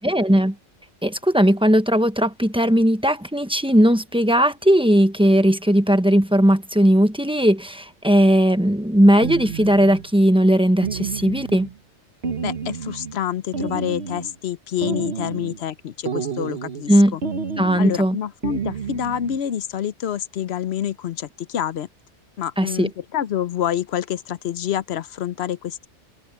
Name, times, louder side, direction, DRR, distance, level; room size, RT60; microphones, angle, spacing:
voice 1, 0.0-0.5 1.0-11.7 16.9-17.2 17.6-18.2 22.6-22.9, equal, 5° right, 0.9 m, -17 dB
sound 1, 9.2-10.1 10.8-11.8 12.2-13.2 13.5-14.3 14.8-15.6 16.1-16.9 17.2-18.1 18.4-19.4, right 5 dB, 60° right, 1.5 m, -30 dB
voice 2, 12.4-17.2 17.8-21.9 22.4-25.9, left 10 dB, 65° left, 0.9 m, -27 dB
omnidirectional pair, 1.2 m